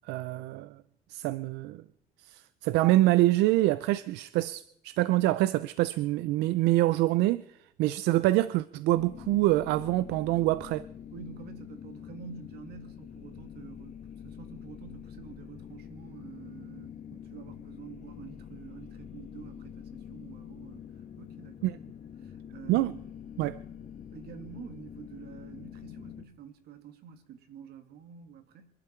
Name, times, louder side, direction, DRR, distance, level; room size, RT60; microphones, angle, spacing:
voice 1, 0.1-0.7 1.1-1.8 2.3-7.4 7.8-10.9 21.6-21.7 22.7-22.9 23.4-23.6, right 16 dB, 90° right, 0.5 m, -25 dB
sound 1, 8.9-26.3, left 8 dB, 45° left, 1.7 m, -46 dB
voice 2, 11.1-14.0 14.2-20.9 21.2-21.6 22.2-23.1 24.1-28.7, right 7 dB, 70° right, 2.1 m, -48 dB
26.0 x 11.5 x 4.5 m
cardioid pair, 110°, 17 cm